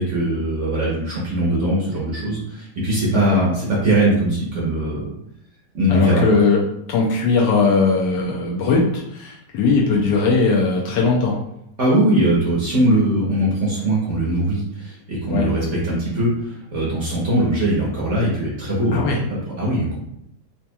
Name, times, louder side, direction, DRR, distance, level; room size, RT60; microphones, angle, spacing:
voice 1, 0.0-5.1 5.7-6.2 11.8-20.0, right 1 dB, 50° right, -5 dB, 1.0 m, -21 dB
voice 2, 5.9-6.6 6.9-11.4 15.3-15.5 18.9-19.2, left 4 dB, 80° left, -3 dB, 1.3 m, -19 dB
4.3 x 2.8 x 2.2 m, 0.78 s
omnidirectional pair, 1.9 m